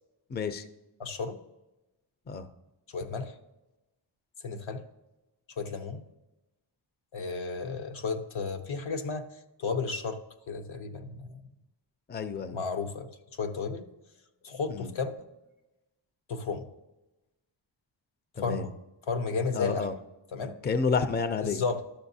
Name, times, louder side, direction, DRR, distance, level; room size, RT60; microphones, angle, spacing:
voice 1, 0.3-0.6 2.3-2.5 12.1-12.6 14.7-14.9 18.4-18.7 19.5-19.9 20.6-21.6, left 5 dB, 20° left, 11 dB, 0.4 m, -30 dB
voice 2, 1.0-1.4 2.9-3.3 4.4-4.8 5.6-6.0 7.1-9.3 9.6-10.2 10.5-11.4 12.5-13.1 13.4-13.9 14.4-15.2 16.3-16.6 18.4-18.7 19.1-19.9 20.3-20.6 21.4-21.8, left 4 dB, 75° left, 6 dB, 0.9 m, -33 dB
12.0 x 6.5 x 2.7 m, 1.0 s
wide cardioid pair, 90°, 48 cm